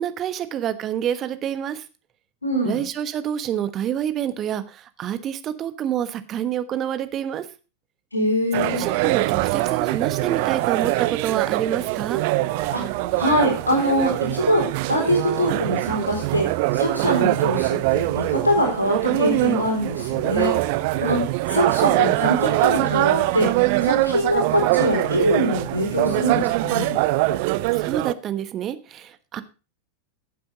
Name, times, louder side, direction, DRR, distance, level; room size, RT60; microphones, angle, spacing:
voice 1, 0.0-1.8 2.6-7.5 8.8-12.2 27.7-29.4, right 10 dB, 30° right, 11 dB, 1.2 m, -27 dB
voice 2, 2.4-2.9 8.1-8.8 12.7-14.6 14.9-16.5 16.7-20.5 21.0-21.2 21.5-23.5 23.8-26.9, equal, 80° left, 1 dB, 4.0 m, -23 dB
sound 1, 8.5-28.1, right 18 dB, 45° right, 0.5 m, -23 dB
15.0 x 7.7 x 4.0 m, 0.32 s
figure-of-eight pair, 90°, 0 cm